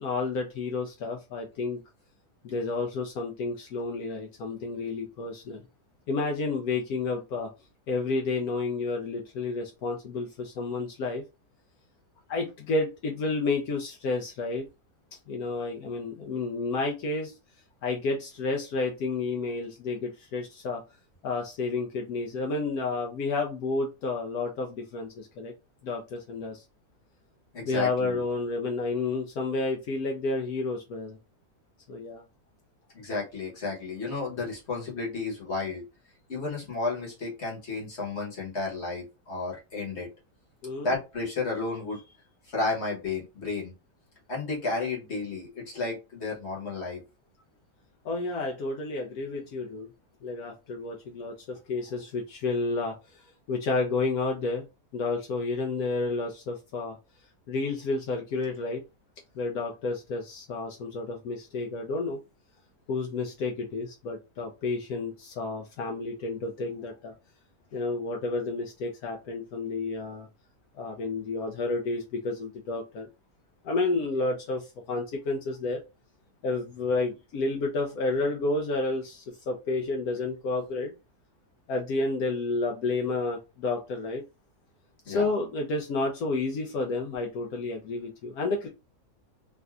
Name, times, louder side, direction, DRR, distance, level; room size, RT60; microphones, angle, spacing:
voice 1, 0.0-1.8 2.4-5.6 6.1-7.5 7.9-11.2 12.3-14.6 15.3-17.3 17.8-20.8 21.2-25.5 25.8-26.6 27.7-31.2 31.9-32.2 40.6-40.9 48.0-49.9 50.2-53.2 53.5-54.6 54.9-57.0 57.5-58.8 59.4-62.2 62.9-67.1 67.7-70.3 70.8-73.1 73.6-75.8 76.4-80.9 81.7-84.2 85.1-88.7, left 3 dB, 75° left, 1 dB, 1.1 m, -30 dB
voice 2, 27.5-28.2 32.9-35.8 36.3-40.1 40.8-42.0 42.5-43.7 44.3-47.0 85.0-85.3, left 3 dB, 50° left, -2 dB, 1.3 m, -32 dB
3.3 x 2.6 x 2.3 m, 0.27 s
omnidirectional pair, 1.7 m